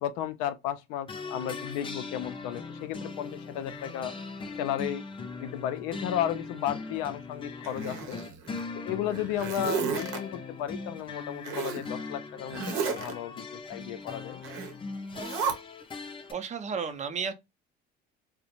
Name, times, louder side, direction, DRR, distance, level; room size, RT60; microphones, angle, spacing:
voice 1, 0.0-4.1 4.6-5.0 5.4-8.2 8.7-14.4, left 11 dB, 85° left, 0.4 m, -34 dB
sound 1, 1.1-16.3, left 4 dB, 25° left, 0.5 m, -40 dB
Zipper (clothing), 7.6-8.6 9.1-10.2 11.4-11.9 12.5-13.1 14.4-14.7 15.1-15.5, right 6 dB, 80° right, 0.8 m, -33 dB
voice 2, 16.3-17.3, right 6 dB, 35° right, 0.5 m, -32 dB
2.4 x 2.0 x 2.8 m
supercardioid pair, 90°, 21 cm